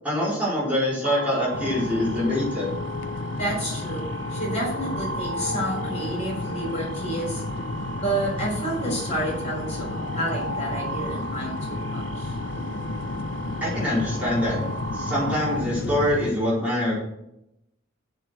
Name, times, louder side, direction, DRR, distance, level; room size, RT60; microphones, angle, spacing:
voice 1, 0.0-2.7 13.6-14.6 14.9-16.9, left 1 dB, 10° right, -9 dB, 4.6 m, -24 dB
sound 1, 1.0-15.6, right 1 dB, 90° right, 1.9 m, -35 dB
sound 2, 1.5-16.3, left 3 dB, 65° left, 0.7 m, -32 dB
voice 2, 3.4-4.0 4.3-7.4 7.9-12.4, right 1 dB, 35° left, -3 dB, 4.5 m, -30 dB
7.7 x 7.2 x 6.3 m, 0.83 s
head